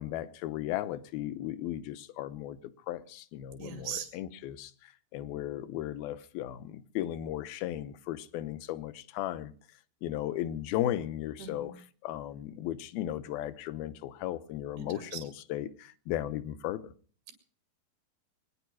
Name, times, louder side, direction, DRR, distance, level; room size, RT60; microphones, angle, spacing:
voice 1, 0.0-9.5 10.0-11.7 12.0-16.9, left 12 dB, 75° left, 14 dB, 2.7 m, -36 dB
voice 2, 3.6-4.1 11.4-11.7 14.8-15.3, right 8 dB, 80° right, 6 dB, 4.4 m, -40 dB
22.0 x 10.5 x 6.2 m, 0.43 s
omnidirectional pair, 4.6 m